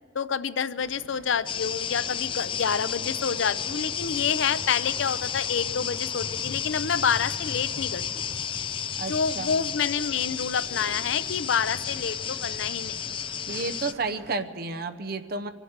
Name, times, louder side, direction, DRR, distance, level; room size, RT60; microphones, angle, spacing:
voice 1, 0.1-8.2 9.1-13.0, left 6 dB, 85° left, 15 dB, 0.5 m, -28 dB
sound 1, 0.8-14.3, right 2 dB, 85° right, 1.2 m, -50 dB
sound 2, 1.5-13.9, left 8 dB, 25° left, 0.3 m, -32 dB
sound 3, 4.3-5.4 6.3-7.4 8.3-9.4 10.3-11.4, left 8 dB, 30° right, 2.5 m, -50 dB
voice 2, 8.9-9.7 13.5-15.5, right 3 dB, 55° right, 8 dB, 0.8 m, -32 dB
24.0 x 8.2 x 7.4 m, 2.4 s
head